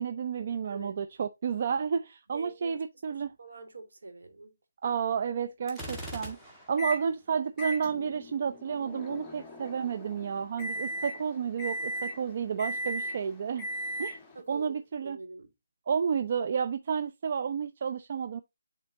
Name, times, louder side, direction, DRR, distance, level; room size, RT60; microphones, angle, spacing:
voice 1, 0.0-3.4 4.8-13.7 14.0-14.2 14.5-15.2 15.9-18.4, right 6 dB, 45° right, 0.5 m, -31 dB
voice 2, 0.6-1.0 2.3-2.8 3.4-4.6 14.3-14.7 15.0-15.5, right 3 dB, 75° right, 2.9 m, -44 dB
Gunshot gunfire, 5.7-6.9, equal, 5° right, 1.7 m, -41 dB
Microwave oven, 6.8-7.1 7.6-14.4, equal, 15° left, 1.4 m, -38 dB
9.7 x 4.0 x 2.7 m
figure-of-eight pair, 160°, 0 cm